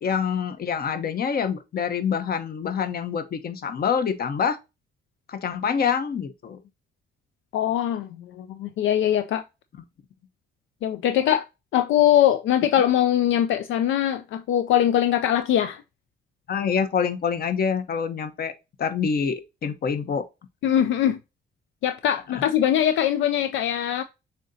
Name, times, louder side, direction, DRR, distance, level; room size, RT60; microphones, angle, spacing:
voice 1, 0.0-4.6 5.3-6.6 16.5-18.5 18.8-20.2 22.3-22.4, left 6 dB, 50° left, 0.8 m, -26 dB
voice 2, 7.5-9.4 10.8-11.5 11.7-15.8 20.6-21.2 21.8-24.0, left 11 dB, 75° left, 0.4 m, -22 dB
7.0 x 2.8 x 2.7 m
cardioid pair, 90°, 20 cm